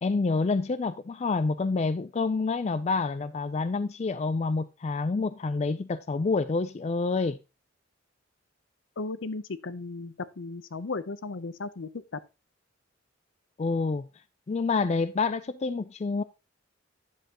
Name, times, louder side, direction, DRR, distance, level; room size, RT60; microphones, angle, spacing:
voice 1, 0.0-7.4 13.6-14.1 14.5-16.2, left 4 dB, 35° left, 0.3 m, -28 dB
voice 2, 9.0-12.2, left 3 dB, 75° left, 0.7 m, -35 dB
10.0 x 7.5 x 2.9 m
head